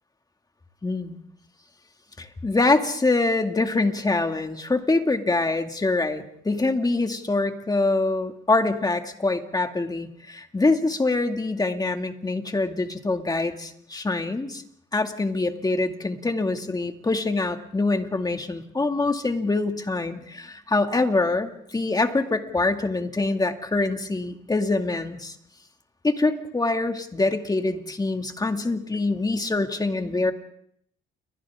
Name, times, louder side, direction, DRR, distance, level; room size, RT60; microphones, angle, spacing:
voice 1, 0.8-1.2 2.2-14.6 14.9-25.4 26.0-30.3, left 3 dB, 20° left, 5 dB, 2.3 m, -24 dB
30.0 x 23.5 x 3.7 m, 0.67 s
cardioid pair, 90°, 20 cm